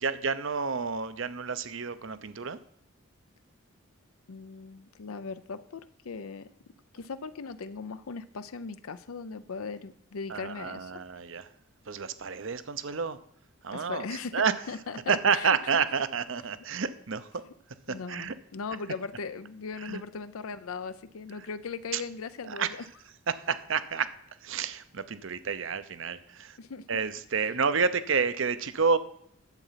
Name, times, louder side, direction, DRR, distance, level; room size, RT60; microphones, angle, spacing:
voice 1, 0.0-2.6 10.3-11.5 11.9-13.2 13.6-14.1 14.3-14.5 15.1-17.3 17.9-18.3 19.8-20.0 21.9-22.0 22.4-22.7 23.3-24.1 24.4-26.6 26.9-29.0, right 5 dB, 60° right, 13 dB, 0.7 m, -29 dB
voice 2, 4.3-6.5 6.9-11.0 13.7-15.6 17.9-22.8 26.6-26.9, left 5 dB, 85° left, 12 dB, 0.6 m, -38 dB
10.5 x 8.0 x 5.7 m, 0.70 s
head